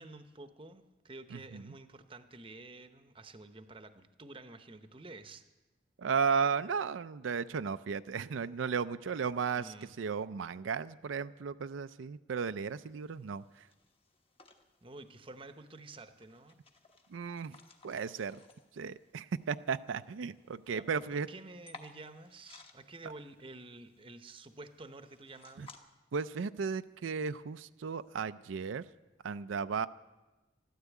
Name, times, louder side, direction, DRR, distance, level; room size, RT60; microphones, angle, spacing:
voice 1, 0.0-5.4 9.6-9.9 14.8-16.6 20.7-25.7, right 2 dB, 25° right, 9 dB, 0.8 m, -50 dB
voice 2, 1.3-1.7 6.0-13.7 17.1-17.6 17.8-18.4 18.7-21.3 23.0-23.1 25.6-25.7 26.1-28.9 29.2-29.9, right 6 dB, 90° right, 12 dB, 0.4 m, -35 dB
sound 1, 12.6-25.8, left 3 dB, 30° left, 1.2 m, -60 dB
13.0 x 12.5 x 8.3 m, 1.1 s
head